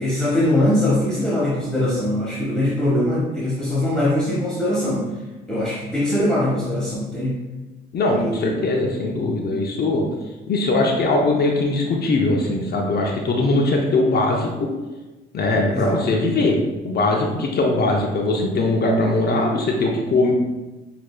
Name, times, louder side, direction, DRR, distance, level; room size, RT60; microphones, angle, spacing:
voice 1, 0.0-5.1 5.5-7.4 8.1-8.7 15.7-16.0, left 1 dB, 5° left, -9 dB, 1.5 m, -22 dB
voice 2, 7.9-10.0 10.5-14.7 15.3-16.6 16.8-20.3, left 2 dB, 55° left, 0 dB, 0.7 m, -20 dB
6.4 x 2.9 x 2.2 m, 1.1 s
cardioid pair, 90°, 20 cm